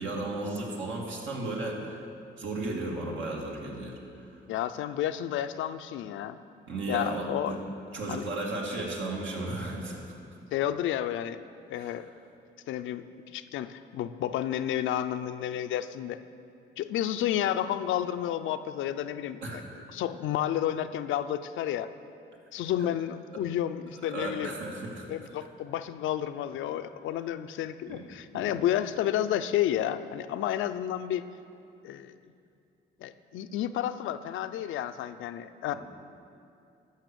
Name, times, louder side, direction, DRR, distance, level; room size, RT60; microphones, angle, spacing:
voice 1, 0.0-2.0 2.4-3.9 6.7-7.6 7.9-10.0 11.8-11.9 19.4-19.6 24.1-25.1 27.9-28.0 28.3-28.5, right 2 dB, 75° right, -1 dB, 2.1 m, -34 dB
voice 2, 4.5-6.4 6.9-7.6 8.1-8.3 10.5-11.4 11.7-12.1 12.7-16.2 16.8-19.6 19.9-21.9 22.5-24.5 25.1-31.2 31.8-32.1 33.0-35.7, left 11 dB, 80° left, 11 dB, 0.5 m, -31 dB
12.0 x 6.9 x 6.8 m, 2.5 s
cardioid pair, 90°, 20 cm